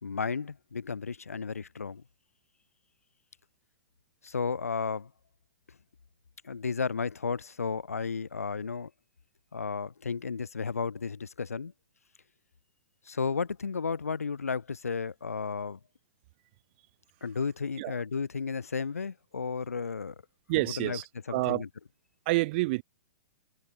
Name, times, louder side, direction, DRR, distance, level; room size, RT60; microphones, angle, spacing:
voice 1, 0.0-2.0 4.2-5.1 6.4-8.9 9.5-11.7 13.1-15.8 17.2-20.1 20.5-21.0 21.3-21.7, left 5 dB, 90° left, 0.9 m, -33 dB
voice 2, 20.5-21.6 22.2-22.8, right 22 dB, 45° right, 4.6 m, -28 dB
hypercardioid pair, 120°, 8 cm